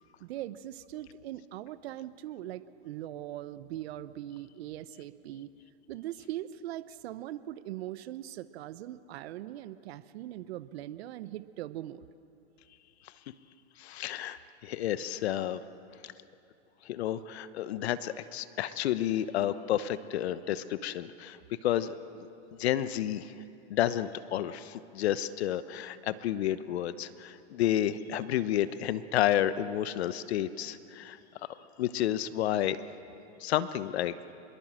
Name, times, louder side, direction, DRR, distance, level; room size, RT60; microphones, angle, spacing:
voice 1, 0.2-5.5 5.9-12.1, right 13 dB, 65° right, 14 dB, 0.9 m, -41 dB
voice 2, 13.8-15.6 16.0-16.1 16.8-22.3 22.6-23.4 23.7-31.2 31.8-32.8 33.4-34.1, left 12 dB, 70° left, 14 dB, 1.1 m, -31 dB
25.5 x 21.5 x 7.6 m, 2.7 s
hypercardioid pair, 115°, 34 cm